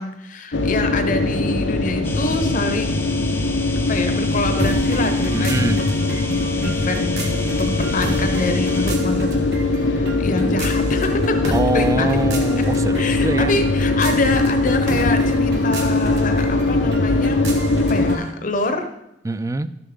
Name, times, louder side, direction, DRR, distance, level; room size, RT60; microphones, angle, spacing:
voice 1, 0.0-3.5 3.9-7.3 7.6-9.3 9.7-12.1 13.0-17.4 17.9-18.8, left 2 dB, 45° left, 7 dB, 0.7 m, -26 dB
sound 1, 0.5-18.2, left 2 dB, 90° left, 0.7 m, -21 dB
sound 2, 2.0-8.9, left 2 dB, 10° left, 0.7 m, -34 dB
sound 3, 4.6-18.3, right 2 dB, 65° right, 1.5 m, -33 dB
voice 2, 5.3-5.9 11.5-13.5 19.2-19.7, right 2 dB, 15° right, 14 dB, 0.3 m, -24 dB
12.0 x 6.9 x 3.6 m, 0.83 s
head